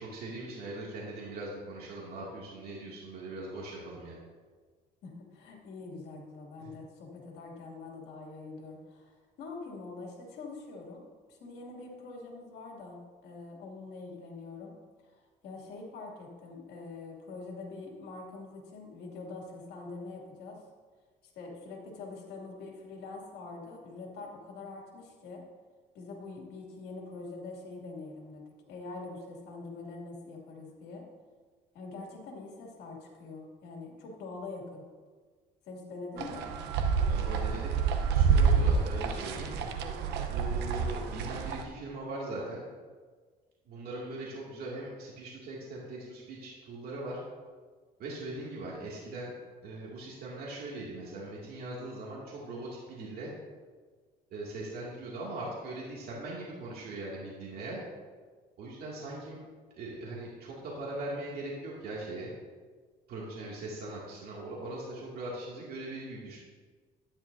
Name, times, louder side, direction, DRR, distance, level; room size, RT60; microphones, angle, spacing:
voice 1, 0.0-4.2 6.6-6.7 37.0-37.8 38.1-39.8 40.3-42.6 43.7-47.2 48.0-49.3 49.6-53.3 54.3-57.8 58.6-59.4 59.8-62.3 63.1-66.4, right 2 dB, 65° right, -5 dB, 2.4 m, -40 dB
voice 2, 5.0-11.0 11.3-14.7 15.0-15.1 15.4-20.6 21.3-25.4 25.9-31.0 31.7-34.8 35.7-36.5, left 3 dB, 75° left, -1 dB, 2.6 m, -44 dB
sound 1, 36.2-41.6, right 6 dB, 80° right, 0.9 m, -28 dB
12.0 x 10.5 x 2.7 m, 1.5 s
cardioid pair, 110°, 17 cm